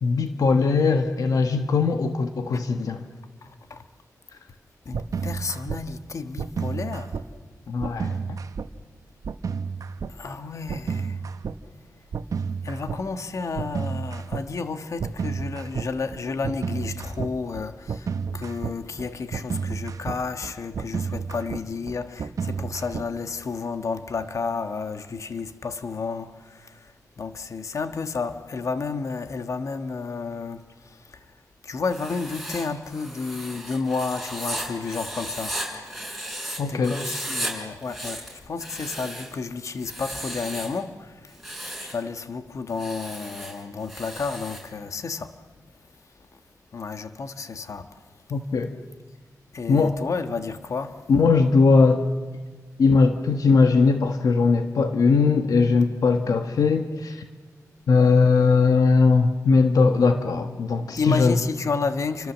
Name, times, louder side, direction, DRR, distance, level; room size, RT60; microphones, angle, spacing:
voice 1, 0.0-3.0 7.7-8.4 36.6-37.0 48.3-48.7 49.7-49.9 51.1-52.1 52.8-57.2 57.9-61.4, left 4 dB, 70° left, 1.3 m, -20 dB
voice 2, 3.4-3.8 4.8-7.2 10.1-11.2 12.6-31.2 31.6-35.6 36.4-41.4 41.8-45.3 46.7-48.0 49.5-51.0 61.0-62.3, left 4 dB, 55° left, 1.5 m, -31 dB
sound 1, 4.9-5.8 6.4-7.3 7.8-8.7 9.2-10.1 10.7-11.6 12.1-13.0 13.6-14.4 15.0-23.3, right 5 dB, 65° right, 1.2 m, -31 dB
Writing, 31.8-36.6 36.8-37.5 37.8-39.4 39.8-40.8 41.3-42.0 42.7-44.7, right 1 dB, ahead, 6.8 m, -35 dB
29.5 x 25.0 x 7.4 m
wide cardioid pair, 135°, 6 cm